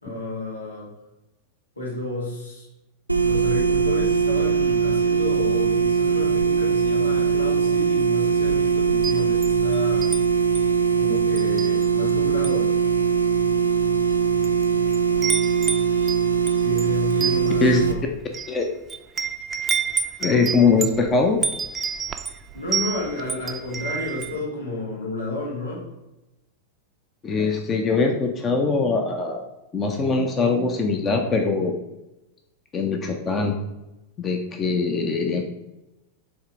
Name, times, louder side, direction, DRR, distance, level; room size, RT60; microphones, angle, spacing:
voice 1, 0.0-0.9 1.8-2.7 3.2-10.1 11.0-12.7 16.6-18.1 22.5-25.9, left 2 dB, 80° left, -4 dB, 2.1 m, -32 dB
sound 1, 3.1-17.9, right 6 dB, 90° right, 0.6 m, -21 dB
Wind chime, 8.9-10.2 10.5-10.8 11.4-12.1 12.4-12.7 13.4-13.5 14.2-14.6 14.9-24.4, right 5 dB, 20° right, 0.5 m, -29 dB
voice 2, 20.2-21.4 27.2-29.5 29.7-31.7 32.7-33.5 34.2-35.4, left 4 dB, 25° left, 4 dB, 0.7 m, -22 dB
7.3 x 3.3 x 4.9 m, 0.97 s
figure-of-eight pair, 90°, 0 cm